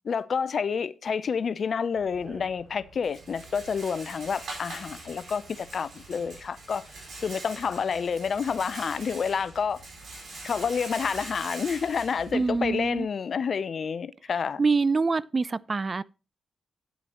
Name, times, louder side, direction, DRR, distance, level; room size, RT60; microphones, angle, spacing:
voice 1, 0.0-9.8 10.4-14.6, left 6 dB, 60° left, 0.5 m, -29 dB
Rattle, 2.0-13.0, right 3 dB, 70° right, 4.6 m, -43 dB
voice 2, 12.3-13.1 14.6-16.0, right 4 dB, 40° right, 0.4 m, -25 dB
9.4 x 9.1 x 3.0 m
supercardioid pair, 50°, 0 cm